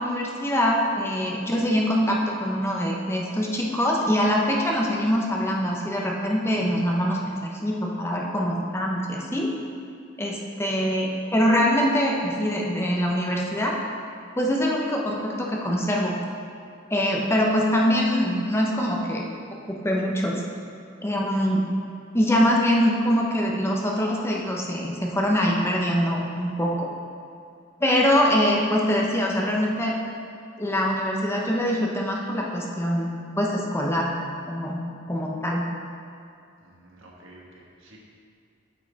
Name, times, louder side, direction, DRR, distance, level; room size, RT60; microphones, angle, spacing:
voice 1, 0.0-9.5 10.2-13.8 14.4-16.2 16.9-19.2 19.7-20.4 21.0-21.6 22.1-26.9 27.8-30.0 30.6-33.1 33.4-34.1 34.5-34.8 35.1-35.7, equal, 15° left, -2 dB, 0.9 m, -23 dB
voice 2, 36.6-38.0, right 1 dB, 85° right, -3 dB, 1.5 m, -50 dB
9.3 x 5.5 x 4.1 m, 2.5 s
head